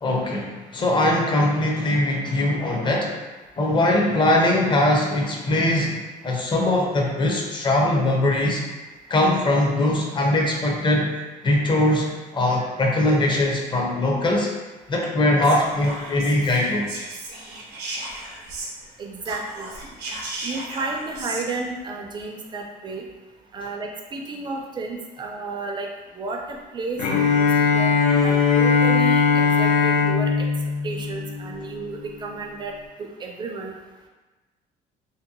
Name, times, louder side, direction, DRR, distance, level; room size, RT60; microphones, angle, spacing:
voice 1, 0.0-3.2 3.6-8.6 9.1-11.1 11.4-14.5 14.9-16.9, left 1 dB, 30° left, -1 dB, 0.5 m, -21 dB
Whispering, 15.4-18.9 19.2-21.4, right 2 dB, 90° right, 0.6 m, -35 dB
voice 2, 19.0-19.7 20.4-23.1 23.5-25.9 26.1-27.9 28.2-30.5 30.8-32.7 33.0-33.7, right 3 dB, 25° right, 1 dB, 0.4 m, -32 dB
Bowed string instrument, 27.0-31.9, left 5 dB, 80° left, 0.4 m, -20 dB
2.6 x 2.1 x 2.7 m, 1.2 s
cardioid pair, 110°, 17 cm